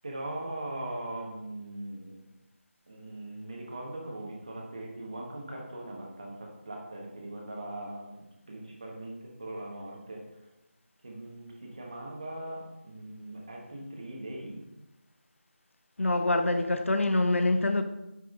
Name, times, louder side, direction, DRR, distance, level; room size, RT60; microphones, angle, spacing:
voice 1, 0.0-2.3 2.9-10.2 11.0-14.6, right 1 dB, 30° right, 1.3 m, -40 dB
voice 2, 16.0-17.8, left 2 dB, 85° left, 0.8 m, -25 dB
9.5 x 5.6 x 2.6 m
figure-of-eight pair, 180°, 7 cm